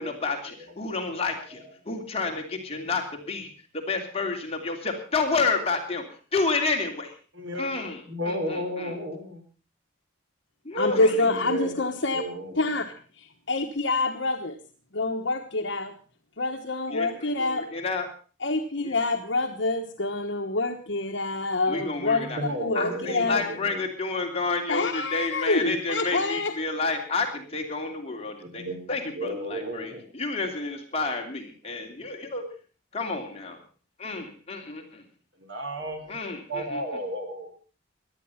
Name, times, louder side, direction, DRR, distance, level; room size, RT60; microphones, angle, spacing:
voice 1, 0.0-3.5 3.9-6.0 6.3-7.1 7.6-8.0 8.3-8.9 10.6-11.0 16.9-18.1 18.8-18.9 21.7-22.4 22.7-28.6 28.9-32.4 32.9-33.6 34.0-35.0 36.1-36.8, left 3 dB, 30° left, 2 dB, 3.0 m, -30 dB
voice 2, 0.6-1.2 1.5-1.7 7.3-9.4 10.9-11.8 12.1-12.7 21.7-21.8 22.1-23.8 28.4-30.0 35.4-36.1 36.5-37.5, equal, 75° right, 4 dB, 5.0 m, -34 dB
voice 3, 10.8-12.2 12.6-12.9 13.2-14.6 14.9-15.9 16.4-17.6 18.4-22.3 22.6-23.4 24.7-26.5, left 2 dB, 65° left, 4 dB, 1.3 m, -26 dB
17.5 x 12.0 x 5.7 m, 0.39 s
head